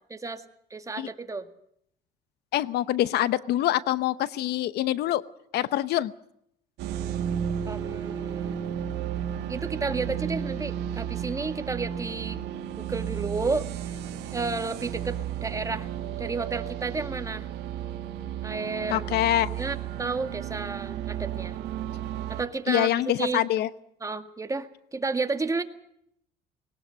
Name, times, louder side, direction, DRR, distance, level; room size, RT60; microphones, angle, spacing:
voice 1, 0.1-0.4 0.7-1.5 7.6-8.6 9.5-12.4 12.8-13.7 14.3-15.9 16.2-17.5 18.4-19.0 19.5-21.6 22.3-23.6 24.0-25.6, right 3 dB, 20° right, 8 dB, 1.9 m, -32 dB
voice 2, 2.5-5.2 5.5-6.1 18.9-19.5 22.7-23.7, left 13 dB, 75° left, 16 dB, 0.9 m, -25 dB
sound 1, 6.8-22.4, right 9 dB, 85° right, 2.3 m, -33 dB
20.5 x 18.5 x 7.8 m, 0.73 s
cardioid pair, 110°, 17 cm